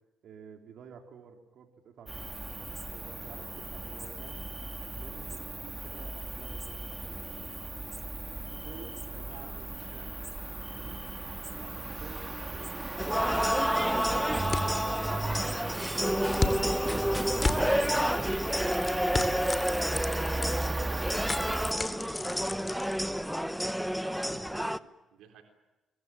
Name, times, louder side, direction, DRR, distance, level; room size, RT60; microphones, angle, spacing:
voice 1, 0.2-2.3 2.9-7.9 8.3-9.7 11.5-12.6 13.7-15.2 21.3-24.2, right 6 dB, 70° right, 3 dB, 3.9 m, -52 dB
Cricket, 2.1-21.7, right 2 dB, 20° right, 2.3 m, -37 dB
voice 2, 9.0-10.1 10.7-11.0 12.5-12.8 24.0-25.4, right 8 dB, 90° right, 4 dB, 3.8 m, -52 dB
sound 1, 13.0-24.8, equal, ahead, 1.0 m, -30 dB
sound 2, 13.2-23.5, left 3 dB, 25° left, 3.1 m, -37 dB
24.5 x 23.5 x 9.0 m, 1.1 s
cardioid pair, 90°, 0 cm